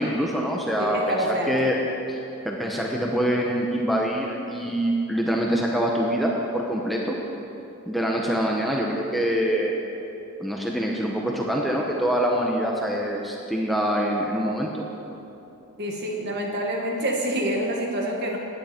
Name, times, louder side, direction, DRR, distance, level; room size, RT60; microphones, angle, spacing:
voice 1, 0.0-1.2 1.5-1.8 2.1-2.2 2.4-7.2 7.9-9.7 10.4-14.8, equal, ahead, -2 dB, 0.9 m, -25 dB
voice 2, 0.8-1.6 15.8-18.4, right 1 dB, 50° right, 0 dB, 1.8 m, -27 dB
17.0 x 10.5 x 4.5 m, 2.9 s
head